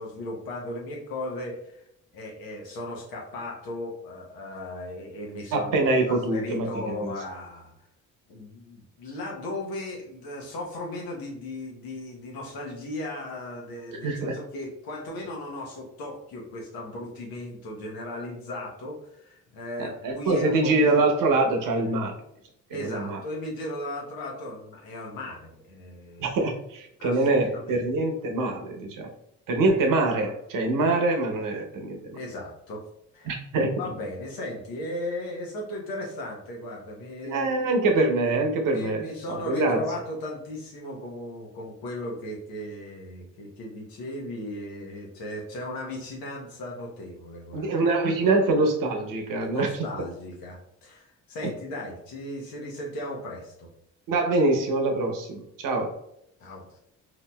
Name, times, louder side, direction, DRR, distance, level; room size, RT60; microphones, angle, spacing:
voice 1, 0.0-1.8 2.1-7.8 8.3-21.0 22.7-26.3 27.0-27.8 31.9-32.8 33.1-33.3 33.8-37.6 38.6-47.7 49.4-53.7 56.4-56.8, left 1 dB, 75° left, -1 dB, 1.0 m, -36 dB
voice 2, 5.5-7.1 13.9-14.3 19.8-22.1 22.7-23.2 26.2-29.1 29.5-32.2 33.2-33.8 37.2-39.8 47.5-49.7 51.4-51.5 54.1-55.9, right 2 dB, 65° right, 3 dB, 0.8 m, -24 dB
4.3 x 2.8 x 2.2 m, 0.77 s
supercardioid pair, 60°, 36 cm